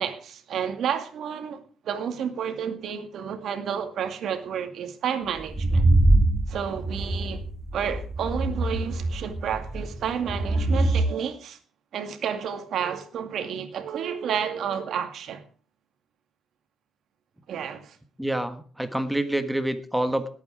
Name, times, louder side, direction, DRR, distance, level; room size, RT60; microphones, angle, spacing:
voice 1, 0.0-5.9 6.5-7.4 7.7-11.6 11.9-15.4 17.5-18.0, right 8 dB, 70° right, 2.1 m, -31 dB
sound 1, 5.4-11.0, right 2 dB, 25° right, 3.8 m, -23 dB
voice 2, 18.2-20.3, right 1 dB, 5° right, 1.4 m, -27 dB
19.0 x 8.7 x 4.9 m
cardioid pair, 90°, 0 cm